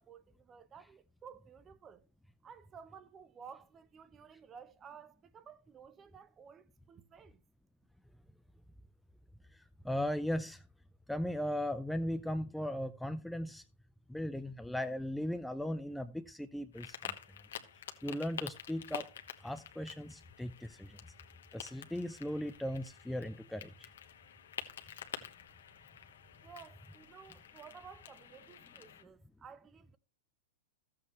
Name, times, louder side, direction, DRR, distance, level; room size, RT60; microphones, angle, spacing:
voice 1, 0.0-2.0 2.4-7.4 26.4-30.0, right 7 dB, 25° right, 0.8 m, -54 dB
voice 2, 9.5-10.6 11.1-13.6 14.1-17.1 18.0-19.1 19.4-21.1 21.5-23.9, left 1 dB, 5° left, 0.5 m, -37 dB
sound 1, 16.7-29.0, left 9 dB, 80° left, 1.1 m, -49 dB
13.5 x 7.8 x 3.1 m
hypercardioid pair, 110°, 0 cm